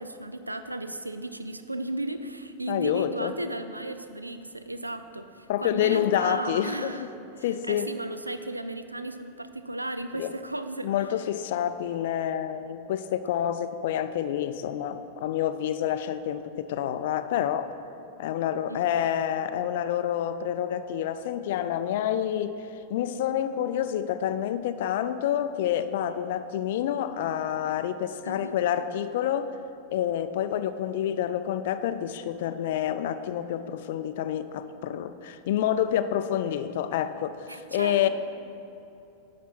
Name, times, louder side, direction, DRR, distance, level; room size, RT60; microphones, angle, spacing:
voice 1, 0.0-7.1 7.4-10.9 18.7-18.8 28.2-28.6 37.5-38.1, right 1 dB, 85° right, 10 dB, 0.4 m, -35 dB
voice 2, 2.7-3.3 5.5-7.1 7.4-7.9 10.2-10.3 10.8-17.7 18.2-29.6 29.9-38.1, left 10 dB, 55° left, 12 dB, 0.3 m, -28 dB
9.7 x 4.1 x 6.1 m, 2.7 s
figure-of-eight pair, 90°, 0 cm